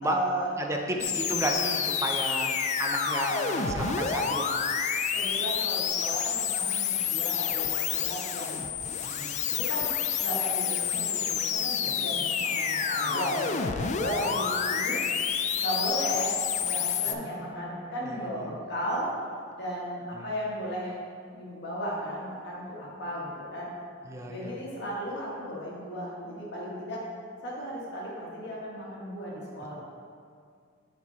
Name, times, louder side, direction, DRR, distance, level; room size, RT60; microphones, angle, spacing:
voice 1, 0.0-0.5 1.0-1.1 3.3-4.0 5.1-8.7 9.5-15.0 15.6-19.1 19.6-21.0 21.3-23.7 24.3-27.0 27.4-29.7, equal, 60° left, -5 dB, 1.7 m, -35 dB
voice 2, 0.6-2.5 2.8-4.5 9.0-9.4 13.1-13.8 17.1-18.2 20.2-20.3 24.1-24.5, right 1 dB, 15° right, 1 dB, 0.6 m, -34 dB
sound 1, 1.0-17.1, left 7 dB, 40° left, 0.3 m, -29 dB
7.3 x 4.5 x 4.0 m, 2.1 s
head